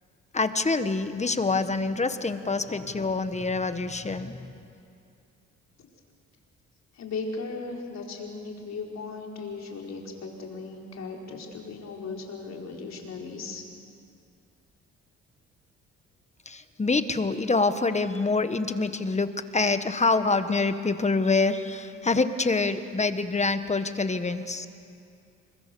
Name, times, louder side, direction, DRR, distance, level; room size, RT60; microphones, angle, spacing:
voice 1, 0.3-4.4 16.5-24.6, left 3 dB, 20° left, 10 dB, 1.3 m, -26 dB
voice 2, 6.9-13.6, left 4 dB, 60° left, 0 dB, 4.5 m, -37 dB
28.5 x 22.0 x 7.0 m, 2.5 s
cardioid pair, 90°, 30 cm